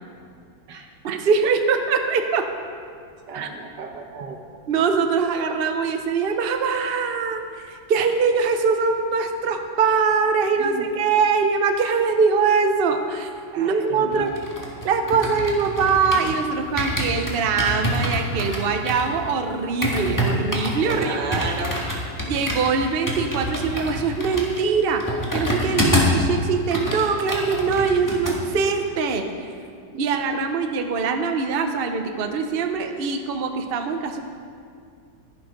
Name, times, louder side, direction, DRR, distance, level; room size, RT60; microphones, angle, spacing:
voice 1, 1.0-2.5 3.3-3.5 4.7-13.3 13.6-14.3 14.8-21.4 22.3-29.3 30.0-34.2, right 5 dB, 45° right, 5 dB, 0.8 m, -22 dB
voice 2, 3.3-4.4 10.6-10.9 13.5-14.3 20.9-21.8 29.9-30.0, right 4 dB, 90° right, 3 dB, 1.8 m, -32 dB
sound 1, 14.1-16.4 16.8-26.2 26.5-28.4 28.6-28.9, equal, 10° left, 1.6 m, -26 dB
11.0 x 11.0 x 5.2 m, 2.3 s
omnidirectional pair, 1.8 m